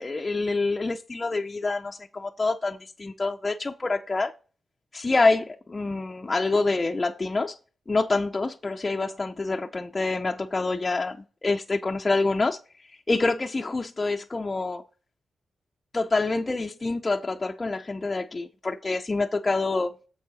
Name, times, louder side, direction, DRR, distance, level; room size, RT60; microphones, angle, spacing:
voice 1, 0.0-4.3 4.9-7.6 7.9-12.6 12.9-14.8 15.9-19.9, left 3 dB, 30° left, 0.5 m, -26 dB
6.8 x 6.4 x 4.1 m
cardioid pair, 90°, 0 cm